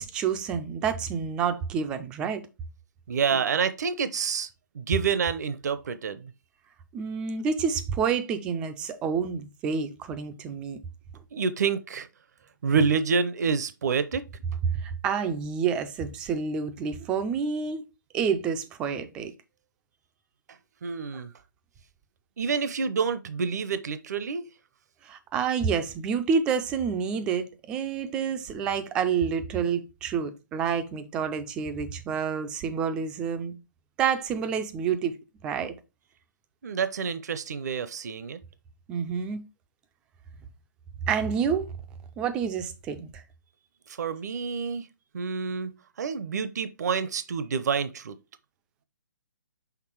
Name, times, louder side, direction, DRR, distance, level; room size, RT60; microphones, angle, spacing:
voice 1, 0.0-2.4 6.9-10.8 14.8-17.8 18.1-19.3 25.0-33.5 34.0-35.1 35.4-35.7 38.9-39.4 41.1-41.7 42.2-43.1, right 6 dB, 10° right, 0.3 m, -28 dB
voice 2, 3.1-4.5 4.7-6.3 11.3-12.1 12.6-14.2 20.8-21.3 22.4-24.5 36.6-38.4 43.9-44.9 45.1-45.7 46.0-48.1, right 6 dB, 55° right, 0.6 m, -28 dB
5.9 x 3.6 x 4.5 m
hypercardioid pair, 165°, 11 cm